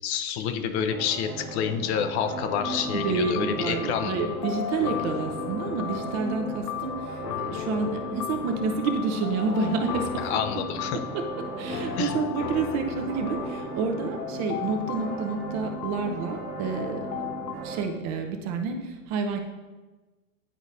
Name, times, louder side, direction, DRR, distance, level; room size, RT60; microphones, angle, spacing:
voice 1, 0.0-4.1 10.2-11.0 12.0-12.1, left 7 dB, 45° left, 7 dB, 0.7 m, -28 dB
sound 1, 0.9-17.9, right 3 dB, 50° right, 1.4 m, -37 dB
sound 2, 2.6-17.6, left 12 dB, 80° left, 0.5 m, -36 dB
voice 2, 2.9-10.4 10.9-17.3 17.6-19.4, right 4 dB, 35° right, 5 dB, 0.7 m, -29 dB
9.9 x 4.0 x 2.6 m, 1.2 s
hypercardioid pair, 105°, 47 cm